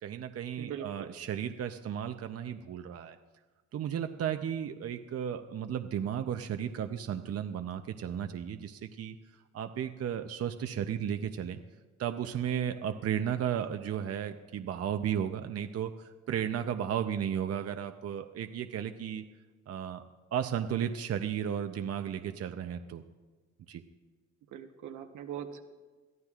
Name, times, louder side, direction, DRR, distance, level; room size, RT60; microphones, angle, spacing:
voice 1, 0.0-3.2 3.7-9.2 9.5-11.6 12.0-19.2 19.7-20.0 20.3-23.0 23.7-23.8, right 9 dB, 55° right, 7 dB, 0.7 m, -34 dB
voice 2, 0.6-1.1 24.5-25.6, right 9 dB, 80° right, 5 dB, 1.1 m, -41 dB
21.5 x 13.5 x 2.4 m, 1.3 s
cardioid pair, 90°, 30 cm